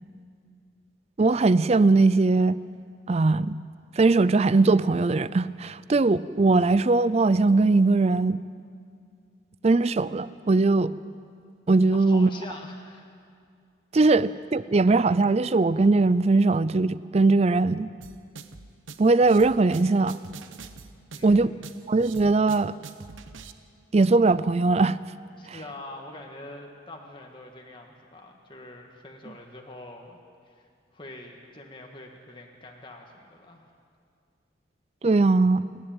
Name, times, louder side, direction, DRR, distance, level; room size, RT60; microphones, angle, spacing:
voice 1, 1.2-2.6 3.1-3.6 4.0-8.4 9.6-10.9 11.7-12.3 13.9-17.9 19.0-20.2 21.2-21.5 21.9-22.7 23.9-25.0 25.5-25.6 35.0-35.6, right 3 dB, 35° right, 17 dB, 0.4 m, -20 dB
voice 2, 11.9-13.0 21.1-21.7 25.4-30.2 30.5-33.7, left 2 dB, 25° left, 1 dB, 1.7 m, -44 dB
sound 1, 18.0-23.5, right 4 dB, 85° right, 1.0 m, -44 dB
29.0 x 11.0 x 8.9 m, 2.3 s
head